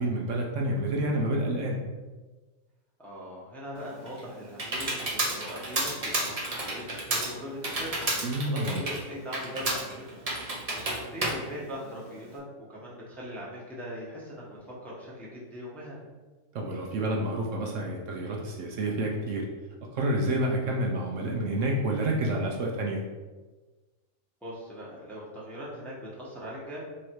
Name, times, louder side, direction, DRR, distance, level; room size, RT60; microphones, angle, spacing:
voice 1, 0.0-1.8 8.2-8.8 16.5-19.4 19.9-23.0, right 1 dB, 65° right, -1 dB, 1.0 m, -29 dB
voice 2, 3.0-10.2 10.7-12.4 12.7-16.1 24.4-26.8, equal, ahead, -7 dB, 0.9 m, -40 dB
Computer keyboard, 3.8-12.4, right 2 dB, 35° right, 0.7 m, -32 dB
3.7 x 3.1 x 4.5 m, 1.3 s
omnidirectional pair, 1.4 m